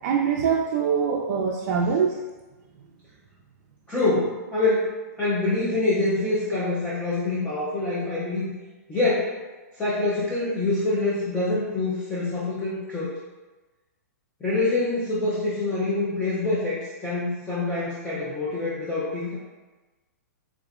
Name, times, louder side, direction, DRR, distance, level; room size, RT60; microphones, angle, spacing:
voice 1, 0.0-2.2, right 6 dB, 50° right, 0 dB, 0.4 m, -23 dB
voice 2, 3.9-4.9 5.2-8.5 8.9-9.3 9.8-13.2 14.4-19.4, left 2 dB, 10° left, -9 dB, 0.5 m, -25 dB
3.6 x 3.0 x 2.4 m, 1.2 s
hypercardioid pair, 145°, 9 cm